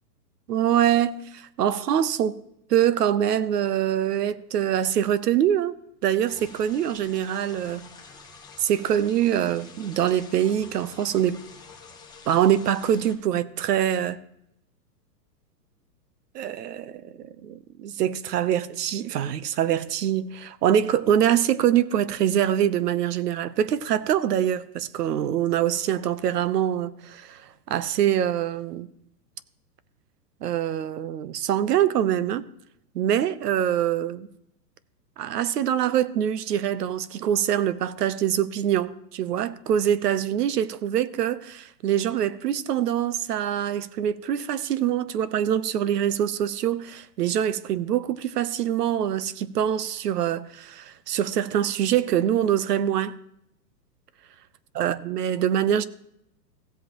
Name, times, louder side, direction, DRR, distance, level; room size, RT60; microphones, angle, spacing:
voice 1, 0.5-2.4 2.7-5.7 6.0-7.9 8.6-11.4 12.3-14.2 16.3-27.4 27.7-28.9 30.4-32.5 32.9-34.3 35.2-53.2 54.7-55.8, right 10 dB, 70° right, 0.8 m, -24 dB
sound 1, 6.3-13.1, left 5 dB, 10° left, 1.0 m, -47 dB
16.0 x 7.7 x 3.0 m
hypercardioid pair, 145°, 49 cm